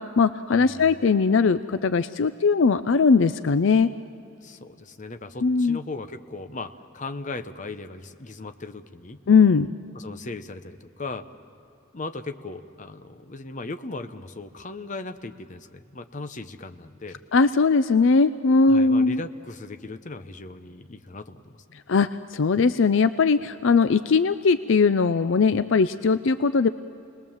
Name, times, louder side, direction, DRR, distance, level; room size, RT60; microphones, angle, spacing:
voice 1, 0.0-3.9 5.4-5.8 9.3-9.7 17.3-19.2 21.9-26.7, left 4 dB, 70° left, 13 dB, 0.5 m, -20 dB
voice 2, 0.6-0.9 4.4-9.2 9.9-11.3 11.9-17.2 18.6-21.8, left 3 dB, 40° left, 9 dB, 0.8 m, -38 dB
29.0 x 20.5 x 7.3 m, 2.8 s
head